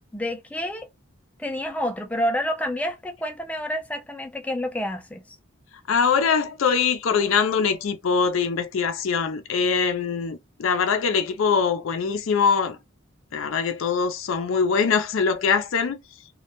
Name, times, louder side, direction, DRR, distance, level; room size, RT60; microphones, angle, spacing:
voice 1, 0.1-0.9 1.4-5.2, equal, 5° left, 0.4 m, -28 dB
voice 2, 5.9-12.8 13.3-16.0, left 5 dB, 85° left, 0.4 m, -23 dB
2.2 x 2.1 x 2.9 m
head